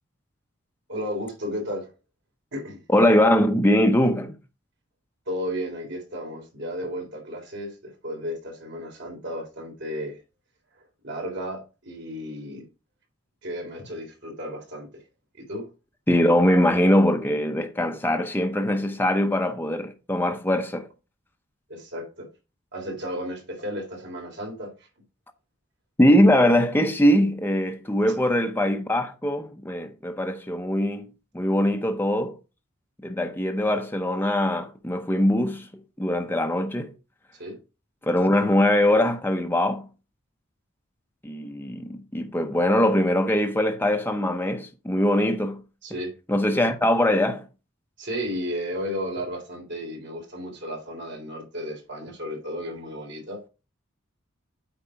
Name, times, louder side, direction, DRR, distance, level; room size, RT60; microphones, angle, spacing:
voice 1, 0.9-1.9 2.5-2.8 5.3-10.2 10.7-12.7 13.4-15.0 15.3-15.7 21.7-22.3 22.7-24.9 28.1-28.2 37.3-37.6 45.8-46.1 48.0-53.5, equal, 60° right, 3.7 m, -34 dB
voice 2, 2.9-4.4 16.1-20.9 26.0-31.1 31.3-32.4 33.0-35.7 36.0-36.9 38.0-39.9 41.2-45.6 46.3-47.4, left 1 dB, 10° left, 0.8 m, -22 dB
8.6 x 4.5 x 5.8 m
head